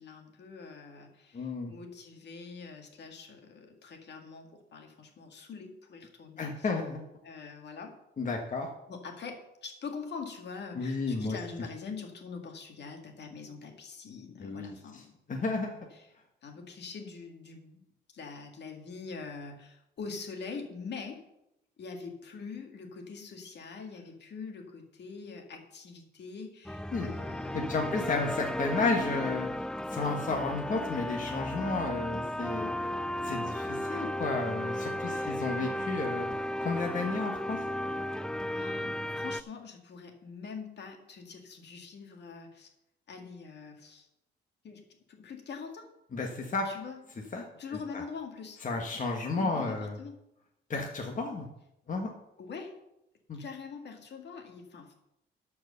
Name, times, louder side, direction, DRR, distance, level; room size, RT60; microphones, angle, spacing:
voice 1, 0.0-6.7 7.2-8.0 8.9-15.1 16.0-16.1 16.4-17.8 18.1-21.2 21.8-27.9 35.1-35.6 38.5-42.7 43.1-44.1 44.6-45.9 46.6-47.0 47.6-48.6 49.4-50.2 52.4-52.8 53.3-54.9, left 5 dB, 60° left, 4 dB, 2.0 m, -44 dB
voice 2, 1.3-1.7 6.4-7.0 8.2-8.7 10.7-11.4 14.4-15.7 26.9-27.1 27.5-32.7 33.2-36.3 36.6-37.6 46.1-46.7 47.3-47.4 47.9-48.0 48.6-49.9 50.7-51.5 51.9-52.1 53.3-53.4, left 3 dB, 40° left, 2 dB, 1.5 m, -32 dB
sound 1, 26.6-39.4, left 1 dB, 5° left, 0.3 m, -34 dB
11.5 x 4.8 x 6.8 m, 0.84 s
cardioid pair, 90°, 20 cm